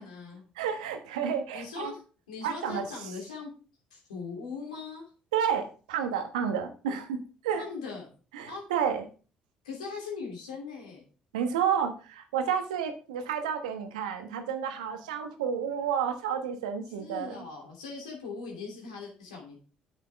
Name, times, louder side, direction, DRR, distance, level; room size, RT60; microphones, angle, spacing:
voice 1, 0.0-0.4 1.5-2.0 2.3-3.5 3.9-5.0 7.6-8.1 8.5-8.6 9.6-11.0 17.0-19.5, left 4 dB, 90° left, 0 dB, 2.8 m, -40 dB
voice 2, 0.6-1.9 2.4-2.9 5.3-7.6 8.3-9.0 11.3-17.4, right 7 dB, 85° right, 7 dB, 1.1 m, -30 dB
9.0 x 7.4 x 3.4 m, 0.37 s
hypercardioid pair, 55°, 4 cm